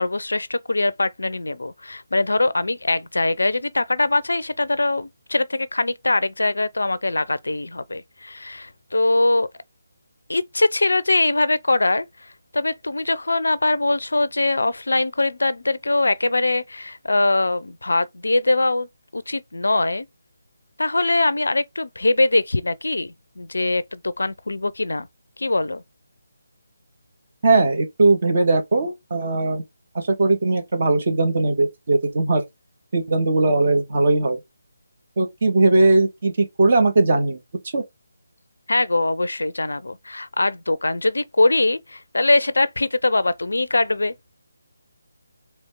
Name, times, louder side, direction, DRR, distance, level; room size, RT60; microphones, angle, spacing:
voice 1, 0.0-9.5 10.3-18.9 19.1-20.1 20.8-25.1 25.4-25.8 38.7-44.1, left 2 dB, 65° left, 0.4 m, -22 dB
voice 2, 27.4-29.6 29.9-32.4 32.9-34.4 35.2-37.4 37.7-37.8, right 2 dB, 40° right, 1.4 m, -19 dB
4.2 x 2.9 x 3.5 m
figure-of-eight pair, 150°, 0 cm